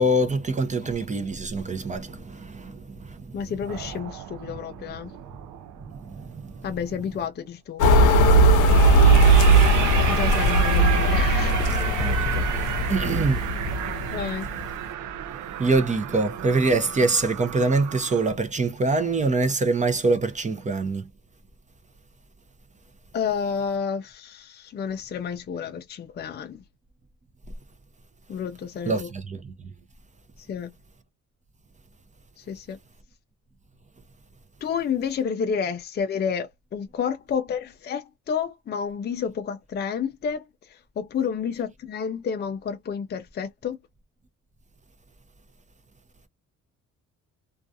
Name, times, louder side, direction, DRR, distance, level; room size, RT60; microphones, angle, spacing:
voice 1, 0.0-3.4 5.9-6.7 12.0-12.4 12.9-13.4 15.6-21.1 28.9-29.5, right 2 dB, 25° right, 0.6 m, -24 dB
voice 2, 3.3-5.1 6.6-7.8 10.1-11.7 14.1-14.5 23.1-26.6 28.3-29.1 30.5-30.7 32.4-32.8 34.6-43.8, left 7 dB, 35° left, 0.4 m, -30 dB
sound 1, 3.7-6.5 8.6-18.3, right 9 dB, 85° right, 0.6 m, -32 dB
sound 2, 7.8-14.3, right 2 dB, 80° left, 0.7 m, -18 dB
2.3 x 2.3 x 2.6 m
cardioid pair, 90°, 30 cm